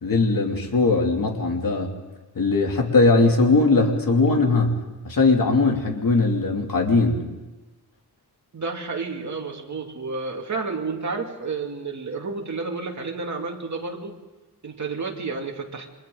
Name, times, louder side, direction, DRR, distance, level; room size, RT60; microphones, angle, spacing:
voice 1, 0.0-1.9 2.3-4.8 5.0-7.2, left 3 dB, 60° left, 1 dB, 2.9 m, -20 dB
voice 2, 8.5-14.2 14.6-15.9, right 4 dB, 50° right, 1 dB, 2.7 m, -31 dB
29.5 x 25.0 x 4.0 m, 1.1 s
wide cardioid pair, 140°, 37 cm